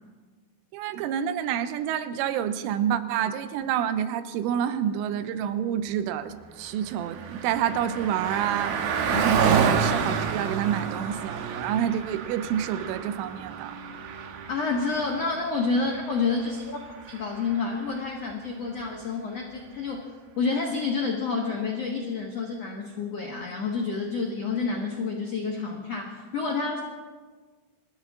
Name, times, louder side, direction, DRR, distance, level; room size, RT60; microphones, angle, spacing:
voice 1, 0.7-8.8 9.1-13.8, right 9 dB, 90° right, 11 dB, 3.3 m, -28 dB
Car passing by, 6.4-18.1, right 6 dB, 70° right, 2.3 m, -30 dB
voice 2, 14.5-16.8 17.1-20.0 20.4-26.8, left 4 dB, 90° left, -1 dB, 1.4 m, -29 dB
28.0 x 14.0 x 3.7 m, 1.5 s
omnidirectional pair, 5.5 m